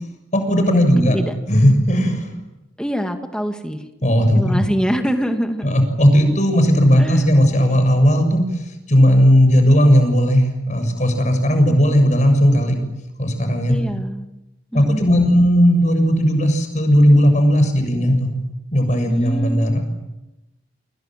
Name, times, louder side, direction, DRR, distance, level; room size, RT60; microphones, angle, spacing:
voice 1, 0.3-1.1 1.5-2.3 4.0-4.6 5.6-8.4 8.9-12.8 13.2-13.8 14.7-18.3 18.7-19.8, equal, 40° left, 6 dB, 6.8 m, -15 dB
voice 2, 0.9-1.4 2.8-3.9 4.3-5.7 7.0-7.5 13.7-14.4 14.7-15.3 19.0-19.9, equal, 5° left, 5 dB, 2.3 m, -25 dB
29.0 x 27.0 x 7.7 m, 0.95 s
head